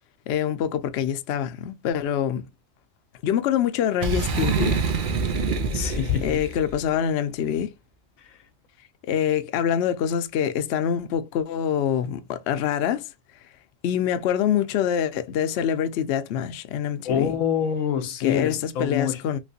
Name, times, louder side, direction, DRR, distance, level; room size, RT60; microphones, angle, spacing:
voice 1, 0.3-2.4 3.2-4.8 6.2-7.7 9.1-13.1 13.8-17.3 18.2-19.4, left 9 dB, 65° left, 0.7 m, -25 dB
Boom, 4.0-6.7, right 4 dB, 50° right, 0.6 m, -25 dB
voice 2, 5.7-6.2 8.3-8.4 17.0-19.2, left 8 dB, 90° left, 1.1 m, -25 dB
3.1 x 3.0 x 2.7 m
omnidirectional pair, 1.4 m